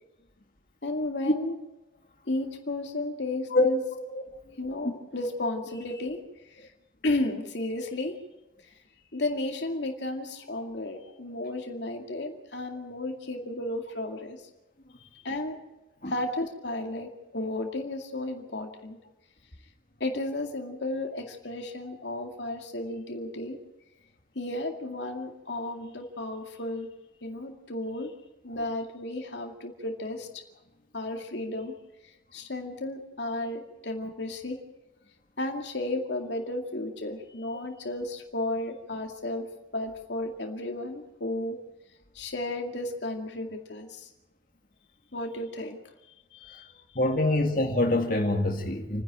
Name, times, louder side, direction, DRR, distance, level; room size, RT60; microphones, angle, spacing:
voice 1, 0.8-1.6 2.3-3.8 4.6-6.2 6.5-6.7 7.0-8.1 8.6-8.8 9.1-14.4 15.1-15.6 16.1-19.0 20.0-23.6 24.3-26.9 27.2-28.1 28.4-30.3 30.9-31.7 32.3-34.6 35.4-39.4 39.7-41.6 42.1-44.1 45.1-45.8 46.3-46.8, left 2 dB, 75° left, 3 dB, 2.3 m, -33 dB
voice 2, 47.0-49.0, left 2 dB, 50° left, 1 dB, 2.2 m, -25 dB
28.5 x 10.5 x 8.9 m, 0.98 s
head